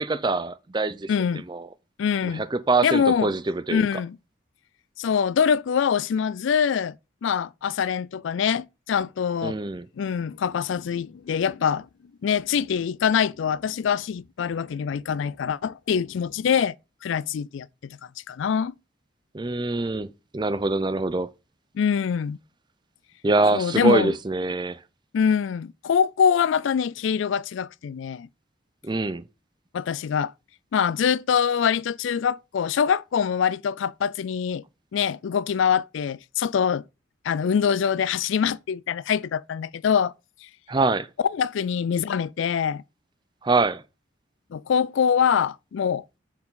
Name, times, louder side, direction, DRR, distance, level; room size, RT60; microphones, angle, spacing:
voice 1, 0.0-1.1 1.5-1.7 2.2-3.8 9.4-9.9 19.3-21.3 23.2-24.8 28.8-29.2 40.7-41.1 43.4-43.8, right 3 dB, 20° right, 0.4 m, -24 dB
voice 2, 1.1-1.4 2.0-2.5 2.8-3.3 3.7-4.2 5.0-7.0 7.2-9.6 10.0-11.9 12.2-16.7 17.0-17.7 18.3-18.8 21.8-22.4 23.5-24.1 25.1-28.3 29.7-30.3 30.7-34.6 34.9-36.8 37.2-40.1 41.3-42.8 44.5-46.0, left 7 dB, 70° left, 0.3 m, -24 dB
7.5 x 4.8 x 3.7 m
head